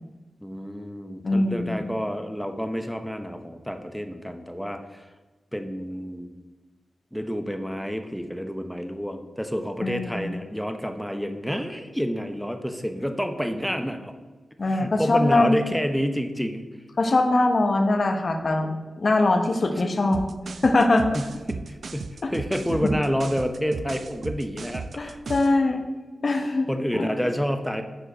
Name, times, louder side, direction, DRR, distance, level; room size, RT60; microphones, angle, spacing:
voice 1, 0.4-5.1 5.5-6.3 7.1-14.1 14.7-16.6 21.1-25.2 26.7-27.8, equal, ahead, 7 dB, 0.7 m, -29 dB
voice 2, 1.2-1.9 9.8-10.3 14.6-15.6 17.0-18.7 19.0-20.3 20.6-21.1 25.0-25.8 26.2-26.7 26.9-27.1, left 2 dB, 55° left, 5 dB, 0.9 m, -22 dB
sound 1, 20.1-25.6, right 4 dB, 70° right, 0.3 m, -36 dB
6.6 x 4.9 x 5.0 m, 1.2 s
cardioid pair, 65°, 0 cm